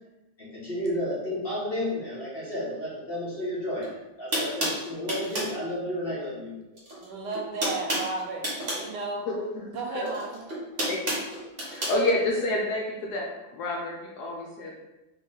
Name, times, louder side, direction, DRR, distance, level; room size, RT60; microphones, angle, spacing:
voice 1, 0.4-3.9 4.2-6.5, left 1 dB, 40° left, -8 dB, 1.0 m, -32 dB
sound 1, 3.8-3.9 4.3-5.6 6.7-7.1 7.3-8.9 10.0-12.0, right 1 dB, 40° right, 0.9 m, -30 dB
voice 2, 7.0-8.4 8.8-9.2 9.7-10.4, right 3 dB, 75° right, 0 dB, 1.2 m, -33 dB
voice 3, 9.3-10.1 10.9-11.2 11.7-14.8, left 2 dB, 70° left, -1 dB, 1.0 m, -29 dB
3.0 x 2.9 x 3.7 m, 1.0 s
omnidirectional pair, 2.0 m